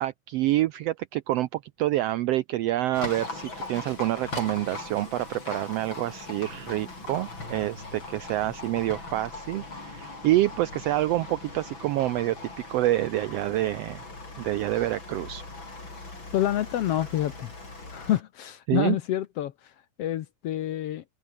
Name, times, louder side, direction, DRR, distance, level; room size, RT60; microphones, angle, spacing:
voice 1, 0.0-12.4 12.7-14.0 14.4-15.4 18.7-19.0, right 15 dB, 80° right, 1.4 m, -27 dB
Livestock farm animals working animals, 2.9-18.2, left 3 dB, 40° left, 6.9 m, -40 dB
voice 2, 16.3-17.5 17.9-21.0, left 12 dB, 70° left, 1.6 m, -28 dB
open air
omnidirectional pair, 3.5 m